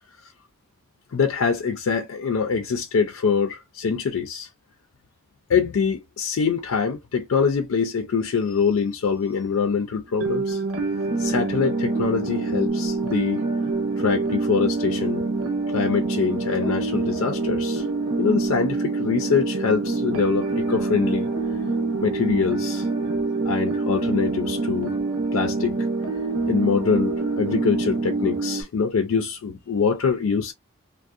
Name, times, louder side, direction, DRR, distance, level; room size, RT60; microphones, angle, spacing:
voice 1, 1.1-4.5 5.5-10.6 11.2-13.4 14.0-15.2 15.7-17.9 18.2-21.3 22.0-22.9 23.4-25.0 25.3-25.8 26.5-30.5, left 5 dB, 80° left, 0.4 m, -24 dB
sound 1, 10.2-28.6, right 3 dB, 75° right, 0.7 m, -26 dB
2.6 x 2.1 x 2.3 m
head